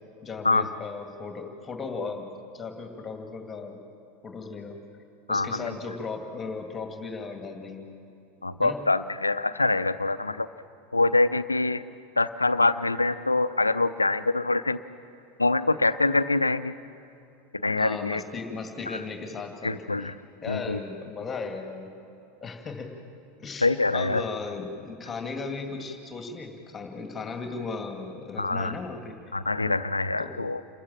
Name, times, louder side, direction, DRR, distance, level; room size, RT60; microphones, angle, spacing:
voice 1, 0.2-3.8 4.2-4.8 5.3-7.9 8.6-8.8 17.8-20.1 20.4-21.9 22.4-22.9 23.4-29.1 30.2-30.3, left 4 dB, 25° left, 4 dB, 2.2 m, -36 dB
voice 2, 5.3-5.7 8.4-10.5 10.9-11.8 12.2-14.8 15.4-16.7 17.5-18.2 19.6-20.1 20.5-20.8 23.6-24.2 28.4-28.7 29.3-30.6, left 2 dB, 90° left, 14 dB, 0.5 m, -24 dB
28.0 x 14.5 x 7.4 m, 2.8 s
figure-of-eight pair, 85°, 0 cm